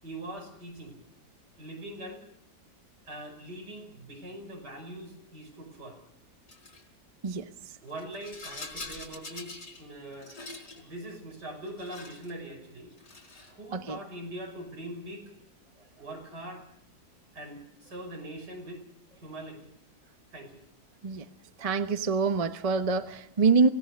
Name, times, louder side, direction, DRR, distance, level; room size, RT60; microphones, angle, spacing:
voice 1, 0.0-1.0 1.6-2.2 3.1-6.0 7.8-10.3 10.8-12.9 13.5-15.3 16.0-16.6 17.3-18.8 19.1-19.7 20.3-20.6, right 1 dB, 80° right, 3 dB, 6.3 m, -42 dB
Rattle, 6.5-6.8 7.9-9.8 10.1-10.8 11.6-12.3 12.9-13.6, left 3 dB, 85° left, 5.0 m, -44 dB
voice 2, 21.6-23.7, right 4 dB, 25° right, 9 dB, 0.9 m, -25 dB
26.0 x 18.0 x 6.7 m, 0.72 s
omnidirectional pair, 1.8 m